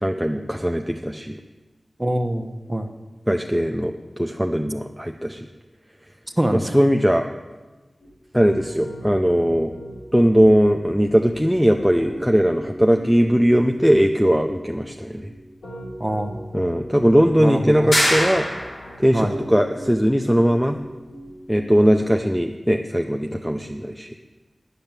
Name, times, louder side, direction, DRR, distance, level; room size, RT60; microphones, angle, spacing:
voice 1, 0.0-1.4 3.3-5.5 6.5-7.3 8.3-9.7 10.1-15.3 16.5-18.5 19.0-20.8 21.5-24.1, equal, ahead, 3 dB, 0.6 m, -19 dB
voice 2, 2.0-2.9 6.4-6.7 16.0-16.4 17.4-17.9 19.1-19.3, right 1 dB, 15° right, 6 dB, 1.1 m, -24 dB
Piano, 8.0-22.2, equal, 90° left, 4.3 m, -40 dB
sound 1, 17.9-19.0, equal, 65° left, 4.4 m, -22 dB
9.9 x 6.8 x 9.0 m, 1.2 s
wide cardioid pair, 65°, 0 cm